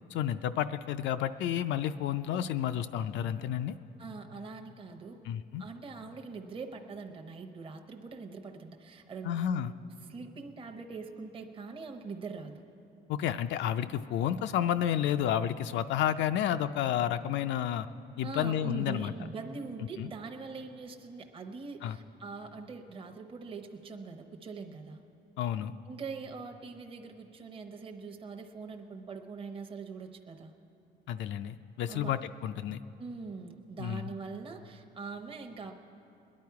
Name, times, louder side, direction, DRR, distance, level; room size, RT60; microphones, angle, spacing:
voice 1, 0.1-3.7 5.2-5.6 9.2-9.7 13.1-17.9 18.2-19.1 20.0-20.1 21.8-22.0 25.4-25.7 31.1-32.8 33.8-34.1, left 10 dB, 70° left, 9 dB, 0.4 m, -31 dB
voice 2, 4.0-5.2 5.6-9.6 10.1-12.6 18.2-25.0 25.9-30.5 31.9-32.1 33.0-35.7, right 4 dB, 30° right, 4 dB, 0.8 m, -43 dB
21.0 x 10.5 x 4.7 m, 2.7 s
cardioid pair, 145°, 19 cm